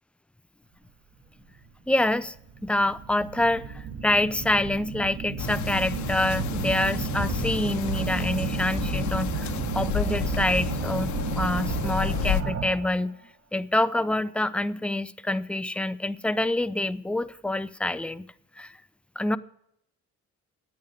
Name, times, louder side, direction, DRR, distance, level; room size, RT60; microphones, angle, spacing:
sound 1, 1.6-1.7 2.3-13.0, right 6 dB, 50° right, 1.5 m, -32 dB
voice 1, 1.9-2.3 2.6-13.2 13.5-18.3 18.6-18.8 19.2-19.4, left 1 dB, 5° left, 0.5 m, -26 dB
sound 2, 5.4-12.4, left 11 dB, 70° left, 0.9 m, -32 dB
10.5 x 8.4 x 7.7 m
cardioid pair, 90°, 30 cm